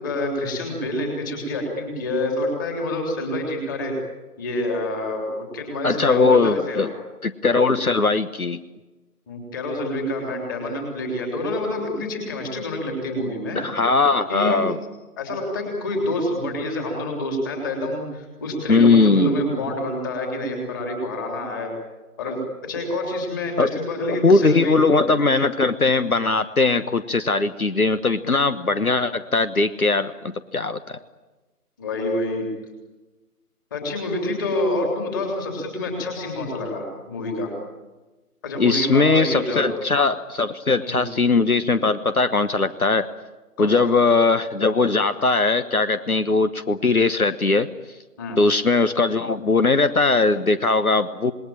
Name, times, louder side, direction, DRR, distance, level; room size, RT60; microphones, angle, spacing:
voice 1, 0.0-3.9 4.4-6.9 7.7-7.8 9.3-13.6 14.3-14.6 15.2-21.7 22.2-24.8 31.8-32.5 33.7-37.5 38.4-39.7 40.8-41.0 43.6-43.9 48.2-48.4, left 1 dB, 15° left, 1 dB, 3.4 m, -27 dB
voice 2, 5.8-6.9 7.2-8.6 13.5-14.8 18.7-19.4 23.6-23.7 24.2-31.0 38.6-43.1 43.6-47.7 48.4-51.3, left 3 dB, 65° left, 11 dB, 1.2 m, -20 dB
27.0 x 20.5 x 8.9 m, 1.1 s
figure-of-eight pair, 160°, 47 cm